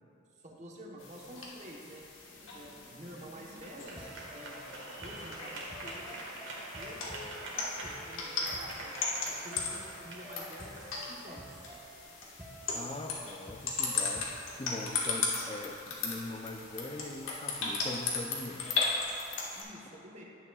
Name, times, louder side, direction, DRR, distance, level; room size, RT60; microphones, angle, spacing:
voice 1, 0.4-2.1 2.5-4.7 5.0-6.2 6.7-9.0 9.2-11.6 19.5-20.2, equal, 35° right, -2 dB, 1.1 m, -49 dB
sound 1, 1.0-19.6, left 4 dB, 90° left, 1.4 m, -37 dB
sound 2, 2.0-12.1, right 1 dB, 70° right, 1.6 m, -46 dB
sound 3, 4.0-14.7, equal, 5° right, 1.0 m, -51 dB
voice 2, 12.7-14.3 14.6-18.7, left 2 dB, 25° left, 5 dB, 0.5 m, -41 dB
10.5 x 8.7 x 2.4 m, 2.7 s
head